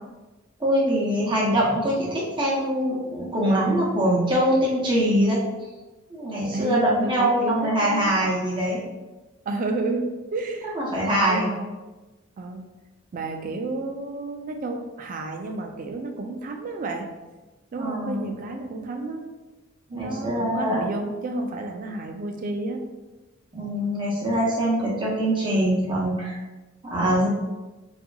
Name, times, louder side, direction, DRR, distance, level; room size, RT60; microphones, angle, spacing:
voice 1, 0.6-5.4 6.1-8.8 10.8-11.5 17.8-18.3 19.9-20.9 23.5-26.4 26.8-27.3, equal, 25° right, -5 dB, 0.7 m, -23 dB
voice 2, 6.5-8.2 9.5-10.7 11.3-11.7 12.4-12.7 13.1-17.1 17.7-19.2 19.9-22.8, right 2 dB, 45° right, 4 dB, 0.3 m, -31 dB
2.7 x 2.4 x 2.2 m, 1.1 s
head